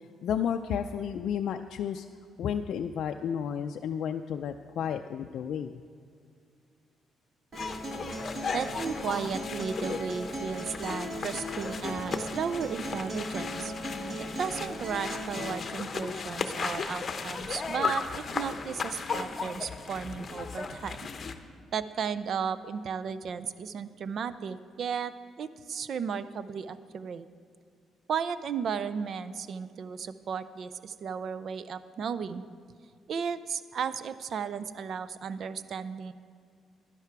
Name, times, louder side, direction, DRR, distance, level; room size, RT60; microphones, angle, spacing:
voice 1, 0.2-2.0 2.4-5.7, left 8 dB, 70° left, 5 dB, 0.4 m, -32 dB
sound 1, 7.5-21.3, left 5 dB, 40° left, 0.8 m, -36 dB
Acoustic guitar, 7.5-15.5, equal, 45° right, 2.3 m, -38 dB
voice 2, 8.5-13.7 14.4-21.0 21.7-27.3 28.1-32.4 33.1-36.1, right 6 dB, 60° right, 14 dB, 0.5 m, -34 dB
11.5 x 10.5 x 4.7 m, 2.3 s
cardioid pair, 90°, 0 cm